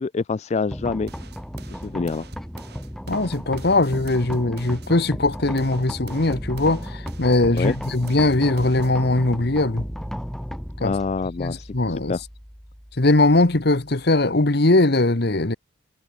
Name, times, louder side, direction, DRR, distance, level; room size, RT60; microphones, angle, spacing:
voice 1, 0.0-1.1 1.7-2.3 7.6-7.8 10.8-11.7 12.1-12.2, left 4 dB, 35° left, 0.3 m, -26 dB
sound 1, 0.7-14.6, equal, ahead, 2.2 m, -35 dB
sound 2, 1.1-4.9 5.3-8.9, right 3 dB, 55° right, 7.4 m, -46 dB
voice 2, 3.1-9.8 10.8-10.9 11.4-12.1 13.0-15.6, left 2 dB, 55° left, 1.3 m, -20 dB
head